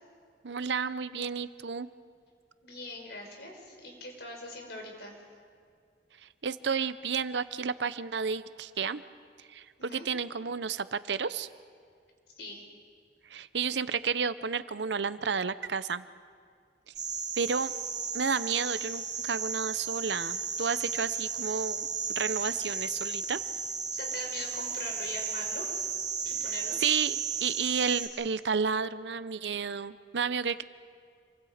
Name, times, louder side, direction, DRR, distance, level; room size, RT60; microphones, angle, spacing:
voice 1, 0.4-1.9 6.2-9.0 9.5-11.5 13.3-16.0 17.4-17.7 18.1-23.4 26.8-30.6, right 6 dB, 85° right, 14 dB, 0.7 m, -31 dB
voice 2, 2.6-5.2 9.8-10.0 12.4-12.7 23.9-25.7 26.2-26.8, left 2 dB, 70° left, 2 dB, 4.6 m, -42 dB
sound 1, 16.9-28.1, right 6 dB, 45° right, 2.4 m, -34 dB
27.0 x 24.0 x 5.0 m, 2.2 s
head